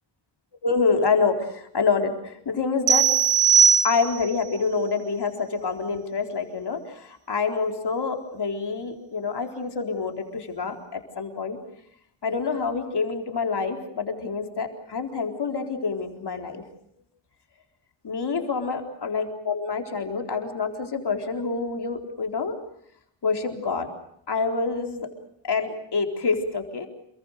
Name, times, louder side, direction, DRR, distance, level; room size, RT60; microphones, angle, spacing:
voice 1, 0.6-3.1 3.8-11.6 12.2-16.6 18.0-22.6 23.2-23.9 24.3-25.1 25.4-26.9, left 4 dB, 55° left, 3 dB, 4.1 m, -27 dB
sound 1, 2.9-4.4, right 7 dB, 65° right, 2.5 m, -19 dB
29.0 x 22.5 x 6.6 m, 0.73 s
cardioid pair, 70°, 46 cm